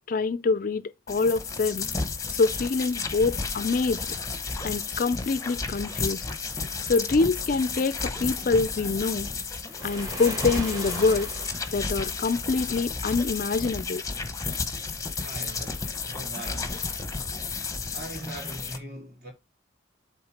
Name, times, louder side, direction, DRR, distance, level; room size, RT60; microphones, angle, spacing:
voice 1, 0.1-1.9 2.3-4.0 4.6-6.2 6.8-9.3 9.8-11.3 11.7-14.0, left 4 dB, 45° left, 0.4 m, -25 dB
sound 1, 1.1-18.8, left 4 dB, 15° left, 0.9 m, -32 dB
Waves surf, 9.7-11.8, right 1 dB, 20° right, 2.0 m, -37 dB
voice 2, 15.2-16.8 17.9-19.3, right 1 dB, 50° right, 3.1 m, -40 dB
8.1 x 3.6 x 4.8 m
head